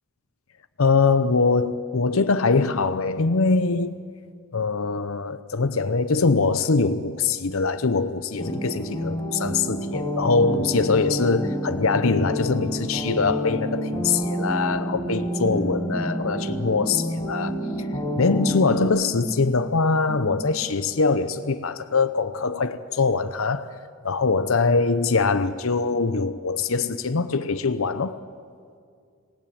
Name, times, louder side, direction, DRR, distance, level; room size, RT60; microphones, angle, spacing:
voice 1, 0.8-4.0 4.5-17.5 17.8-17.9 18.2-23.7 24.0-28.2, left 4 dB, 70° left, 0.8 m, -23 dB
sound 1, 8.4-18.8, equal, 20° left, 5.6 m, -28 dB
sound 2, 15.9-20.7, equal, ahead, 1.0 m, -37 dB
26.5 x 19.0 x 8.8 m
head